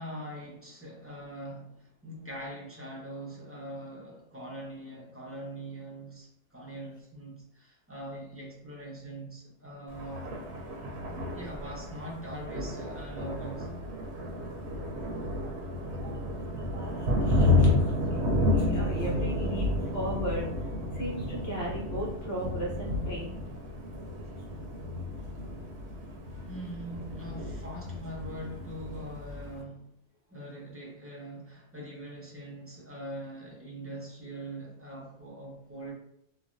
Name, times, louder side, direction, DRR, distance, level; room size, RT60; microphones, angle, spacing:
voice 1, 0.0-10.3 11.3-13.7 26.5-29.9 30.3-35.9, right 1 dB, 20° right, -4 dB, 0.4 m, -42 dB
Thunder, 9.9-29.6, left 1 dB, 70° right, 0.9 m, -31 dB
voice 2, 15.2-16.2 16.7-20.4 20.9-23.5, equal, 60° left, -4 dB, 1.2 m, -37 dB
3.1 x 2.1 x 2.5 m, 0.76 s
omnidirectional pair, 1.2 m